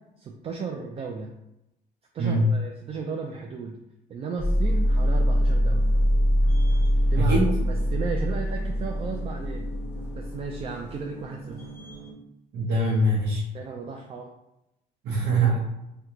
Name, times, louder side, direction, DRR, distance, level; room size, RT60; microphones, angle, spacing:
voice 1, 0.2-1.3 2.1-3.8 4.1-5.9 7.1-9.7 10.1-11.7 13.5-14.3, right 5 dB, 35° right, 1 dB, 0.4 m, -35 dB
voice 2, 2.2-2.6 7.2-7.6 12.5-13.4 15.0-15.6, right 1 dB, 70° right, -6 dB, 0.8 m, -22 dB
sound 1, 4.4-12.1, equal, 15° left, 1.0 m, -24 dB
2.9 x 2.2 x 3.6 m, 0.87 s
cardioid pair, 110°, 17 cm